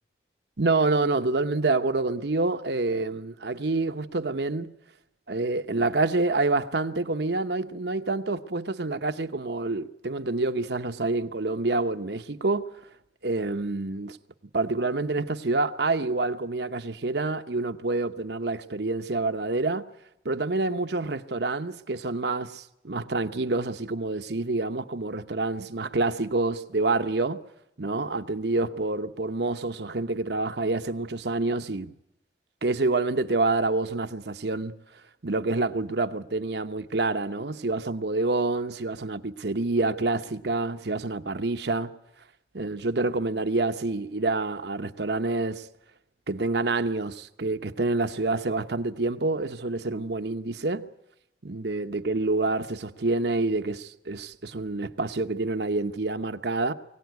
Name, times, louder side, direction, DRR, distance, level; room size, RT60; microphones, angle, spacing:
voice 1, 0.6-4.7 5.3-12.8 13.2-14.2 14.5-19.9 20.2-27.4 27.8-31.9 32.6-34.7 35.2-41.9 42.5-45.7 46.3-50.9 51.4-56.7, right 3 dB, 65° right, 1.0 m, -27 dB
23.0 x 17.5 x 9.4 m
head